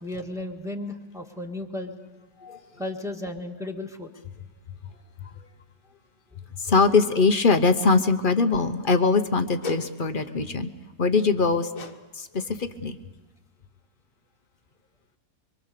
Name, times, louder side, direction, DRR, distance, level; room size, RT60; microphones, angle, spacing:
voice 1, 0.0-1.9 2.8-4.1, left 1 dB, ahead, 2 dB, 1.5 m, -34 dB
voice 2, 6.6-10.7 11.0-11.7 12.1-13.0, left 4 dB, 40° left, 8 dB, 1.0 m, -22 dB
sound 1, 9.6-9.9 11.7-12.0 12.3-12.6 13.1-13.2, left 3 dB, 55° left, 1.7 m, -35 dB
24.0 x 24.0 x 6.8 m, 1.1 s
omnidirectional pair, 1.7 m